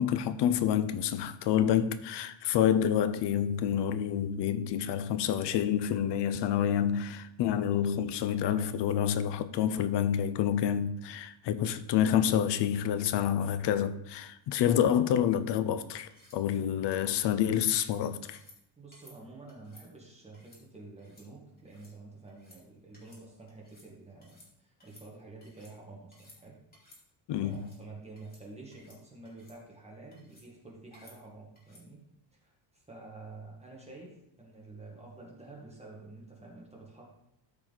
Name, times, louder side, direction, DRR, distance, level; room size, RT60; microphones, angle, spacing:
voice 1, 0.0-18.4 27.3-27.6, left 9 dB, 65° left, 0.7 m, -28 dB
sound 1, 16.1-16.4 16.9-17.2 17.7-18.0 18.3-18.6 18.9-19.2 19.5-19.9 20.3-20.6 21.0-21.3 21.6-21.9 22.3-22.6 22.9-23.2 23.5-23.9 24.2-24.5 24.8-25.7 26.1-26.4 26.7-27.0 27.4-27.8 28.2-28.4 28.7-29.0 29.3-29.6 30.1-30.5 30.9-31.2 31.6-31.8, left 1 dB, 20° left, 2.7 m, -58 dB
voice 2, 18.8-26.6 27.4-32.0 32.3-37.0, right 3 dB, 15° right, 1.9 m, -49 dB
13.5 x 4.7 x 4.1 m
cardioid pair, 150°, 45 cm